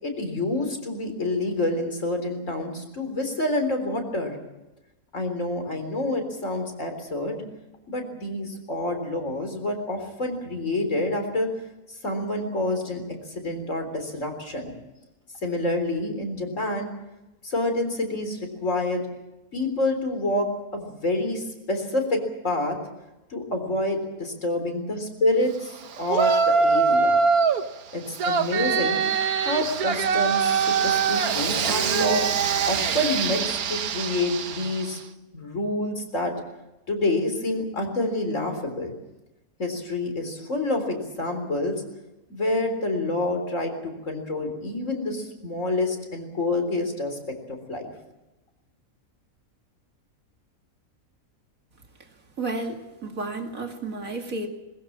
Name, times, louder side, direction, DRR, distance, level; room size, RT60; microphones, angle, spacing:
voice 1, 0.0-4.4 5.1-7.4 7.9-11.5 11.9-13.0 13.3-14.7 15.4-16.9 17.4-19.0 19.5-22.8 23.3-27.2 27.9-29.0 29.4-32.3 32.6-35.0 35.3-36.3 36.9-38.9 39.6-41.8 42.3-47.2 47.5-47.9, left 1 dB, 60° left, 5 dB, 4.2 m, -27 dB
Yell, 26.1-27.6 28.2-34.9, right 5 dB, 90° right, 1.5 m, -23 dB
voice 2, 52.4-54.5, right 2 dB, 70° right, 3 dB, 2.8 m, -32 dB
21.5 x 21.0 x 7.4 m, 0.99 s
omnidirectional pair, 1.5 m